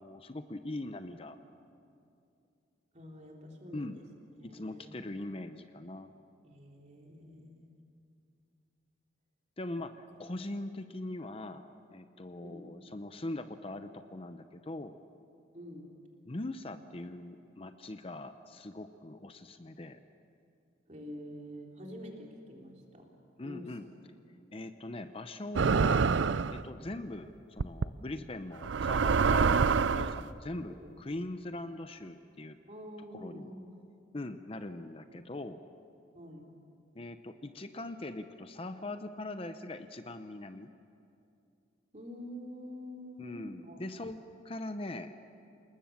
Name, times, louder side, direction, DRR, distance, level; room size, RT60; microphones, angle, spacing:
voice 1, 0.0-1.4 3.7-4.0 4.4-6.1 9.6-14.9 16.3-20.0 23.4-23.9 24.5-26.1 26.5-32.6 33.1-33.5 34.1-35.6 36.9-40.7 43.2-45.1, left 2 dB, 30° left, 9 dB, 0.7 m, -41 dB
voice 2, 2.9-4.0 4.4-5.0 6.4-7.7 12.4-12.8 15.5-16.0 20.9-23.1 23.4-23.7 30.7-30.9 32.7-33.7 35.1-35.3 36.1-36.6 41.9-43.8, equal, 40° right, 0 dB, 3.5 m, -47 dB
sound 1, 25.6-26.6 27.6-27.9 28.6-30.2, right 5 dB, 75° right, 0.5 m, -26 dB
28.5 x 19.5 x 7.3 m, 2.5 s
head